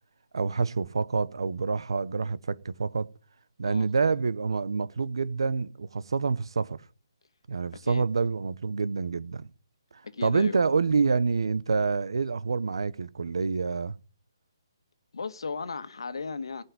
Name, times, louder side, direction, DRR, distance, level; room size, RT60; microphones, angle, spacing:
voice 1, 0.3-3.1 3.6-6.8 7.5-9.5 10.2-14.0, right 4 dB, 75° right, 0.9 m, -27 dB
voice 2, 10.0-10.6 15.1-16.6, left 4 dB, 75° left, 1.5 m, -35 dB
15.0 x 5.5 x 9.6 m
hypercardioid pair, 165°, 3 cm